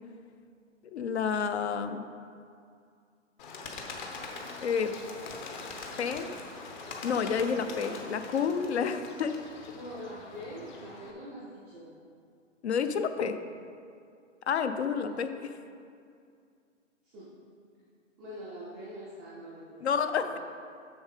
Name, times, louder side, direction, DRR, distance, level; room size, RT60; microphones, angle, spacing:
voice 1, 0.9-2.0 4.6-4.9 6.0-6.3 7.0-9.4 12.6-13.4 14.5-15.3 19.8-20.4, left 6 dB, 60° left, 9 dB, 0.6 m, -29 dB
Bird, 3.4-11.1, left 3 dB, 35° left, 1.0 m, -43 dB
voice 2, 7.6-8.0 9.7-11.9 14.9-15.3 17.0-17.3 18.2-20.4, equal, ahead, -16 dB, 0.4 m, -44 dB
7.0 x 6.4 x 5.2 m, 2.3 s
hypercardioid pair, 140°, 38 cm